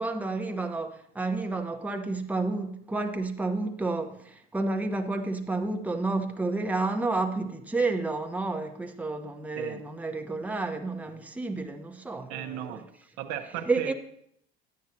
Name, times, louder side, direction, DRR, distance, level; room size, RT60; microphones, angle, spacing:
voice 1, 0.0-12.9 13.7-13.9, right 3 dB, 5° right, 0.8 m, -30 dB
voice 2, 12.3-12.9 13.2-13.9, right 10 dB, 60° right, 0.8 m, -35 dB
10.5 x 9.2 x 2.7 m
hypercardioid pair, 70°, 32 cm